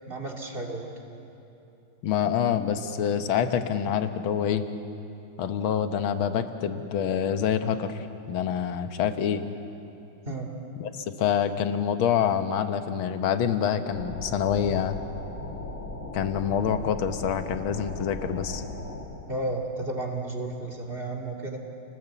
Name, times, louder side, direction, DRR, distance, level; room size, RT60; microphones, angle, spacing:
voice 1, 0.1-0.9 10.2-10.6 19.3-21.6, right 2 dB, 25° right, 1 dB, 2.7 m, -32 dB
voice 2, 2.0-4.7 5.4-9.4 10.8-15.0 16.1-18.6, left 8 dB, 70° left, 9 dB, 1.9 m, -26 dB
sound 1, 13.9-19.0, left 2 dB, 35° left, 3.5 m, -37 dB
29.0 x 19.5 x 8.3 m, 2.8 s
omnidirectional pair, 2.4 m